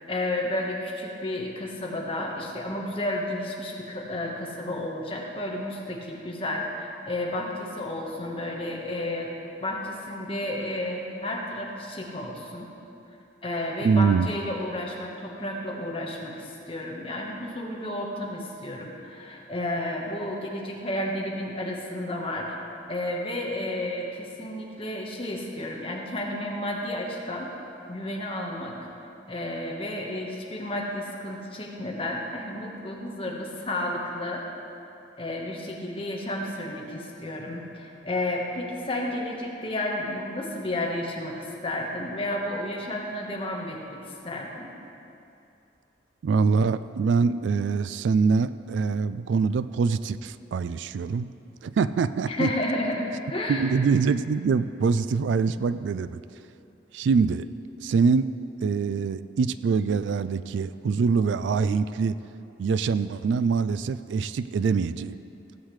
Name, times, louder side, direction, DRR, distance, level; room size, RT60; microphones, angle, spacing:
voice 1, 0.1-6.6 7.1-9.3 9.6-12.7 13.4-22.4 22.9-27.5 27.9-28.7 29.3-34.4 35.2-44.0 44.2-44.7 52.3-53.6, left 1 dB, 30° left, -1 dB, 1.3 m, -32 dB
voice 2, 13.8-14.3 46.2-51.3 51.6-52.5 53.5-56.2 56.9-57.4 57.8-58.3 58.6-62.2 62.6-65.2, right 5 dB, 75° right, 14 dB, 0.3 m, -24 dB
16.5 x 8.1 x 3.2 m, 2.7 s
head